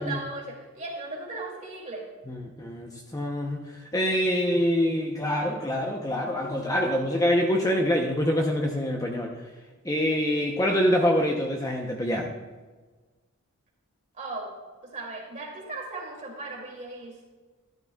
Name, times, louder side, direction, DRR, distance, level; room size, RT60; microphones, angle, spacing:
voice 1, 0.0-2.1 14.1-14.5 14.8-17.4, right 3 dB, 35° right, -2 dB, 2.6 m, -37 dB
voice 2, 2.3-3.7 3.9-9.3 9.8-12.3, equal, 15° left, 1 dB, 0.7 m, -25 dB
12.5 x 12.0 x 2.3 m, 1.3 s
head